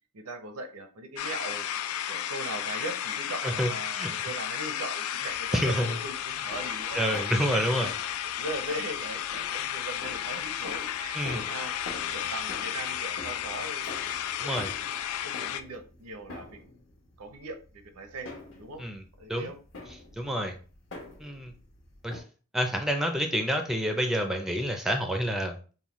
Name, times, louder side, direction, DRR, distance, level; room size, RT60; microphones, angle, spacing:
voice 1, 0.1-1.7 2.1-7.0 7.4-7.6 8.3-11.8 12.1-13.9 14.1-14.6 15.2-16.7 17.2-18.3 18.6-18.8 19.2-19.6 20.3-20.5, right 2 dB, 85° right, 8 dB, 0.7 m, -39 dB
sound 1, 1.2-15.6, left 10 dB, 75° left, 0.3 m, -33 dB
voice 2, 3.4-4.2 5.5-5.9 6.9-7.9 11.1-11.4 14.4-14.7 18.8-19.0 19.3-19.5 20.2-20.5 21.2-21.5 22.0-22.2 22.5-25.7, equal, ahead, 4 dB, 0.4 m, -28 dB
sound 2, 5.2-22.2, left 2 dB, 60° left, 1.0 m, -47 dB
5.4 x 2.2 x 3.0 m, 0.37 s
head